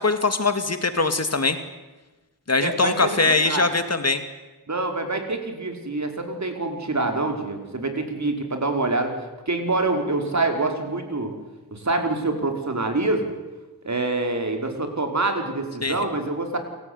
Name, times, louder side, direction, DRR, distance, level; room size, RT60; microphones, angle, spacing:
voice 1, 0.0-1.6 2.5-4.2 15.8-16.0, left 3 dB, 40° left, 9 dB, 2.5 m, -22 dB
voice 2, 2.6-3.7 4.7-9.2 9.5-11.3 11.7-13.3 13.8-16.6, right 2 dB, 45° right, 5 dB, 5.2 m, -26 dB
29.0 x 16.0 x 9.8 m, 1.1 s
cardioid pair, 55°, 39 cm